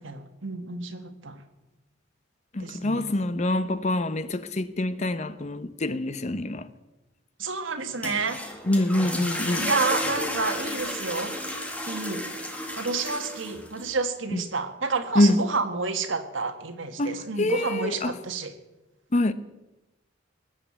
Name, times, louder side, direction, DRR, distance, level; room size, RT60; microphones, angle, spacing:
voice 1, 0.0-1.4 2.6-3.1 7.4-8.4 9.6-11.4 11.9-12.3 12.8-18.5, right 4 dB, 75° right, 1.7 m, -30 dB
voice 2, 2.5-6.7 8.7-9.7 14.3-14.4 15.1-15.5 17.0-18.1 19.1-19.3, left 1 dB, 35° left, 0.7 m, -25 dB
sound 1, 7.8-13.9, left 1 dB, 5° left, 2.0 m, -32 dB
20.0 x 7.7 x 8.7 m
head